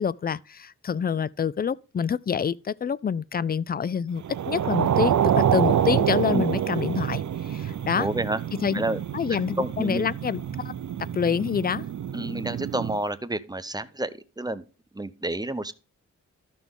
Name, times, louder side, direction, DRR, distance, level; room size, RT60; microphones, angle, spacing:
voice 1, 0.0-8.1 8.6-8.8 9.1-10.7 11.1-11.8, left 7 dB, 30° left, 0.4 m, -27 dB
sound 1, 4.2-13.0, right 9 dB, 70° right, 0.6 m, -27 dB
voice 2, 8.0-8.4 8.7-9.0 9.3-10.1 12.1-14.6 14.9-15.7, right 1 dB, 15° right, 0.7 m, -30 dB
13.0 x 6.0 x 3.6 m
cardioid pair, 80°, 31 cm